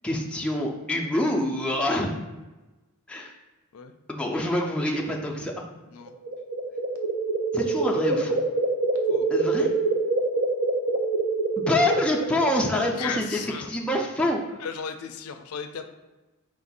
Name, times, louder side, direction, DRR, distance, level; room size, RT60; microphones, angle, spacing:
voice 1, 0.0-2.1 3.1-3.3 4.1-5.5 7.5-8.4 9.3-9.7 11.6-13.4 13.7-14.4, left 1 dB, 5° left, -2 dB, 0.4 m, -26 dB
sound 1, 6.1-12.8, right 3 dB, 65° right, 0.6 m, -26 dB
voice 2, 12.9-13.7 14.6-15.8, left 6 dB, 75° left, 7 dB, 0.4 m, -35 dB
4.6 x 2.5 x 4.0 m, 1.1 s
head